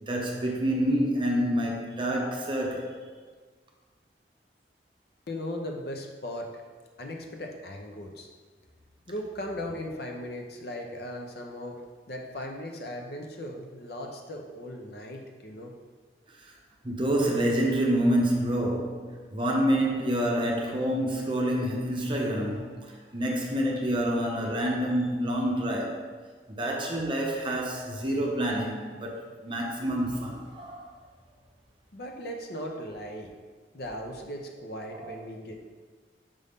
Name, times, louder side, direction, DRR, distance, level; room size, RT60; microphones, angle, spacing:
voice 1, 0.0-3.0 16.4-16.5 16.8-26.1 26.6-30.9 35.0-35.1, right 1 dB, 30° right, 0 dB, 0.8 m, -27 dB
voice 2, 5.3-6.5 7.0-8.3 9.1-15.7 31.9-33.3 33.7-35.6, left 1 dB, 60° left, 2 dB, 0.7 m, -38 dB
5.4 x 5.3 x 3.6 m, 1.5 s
head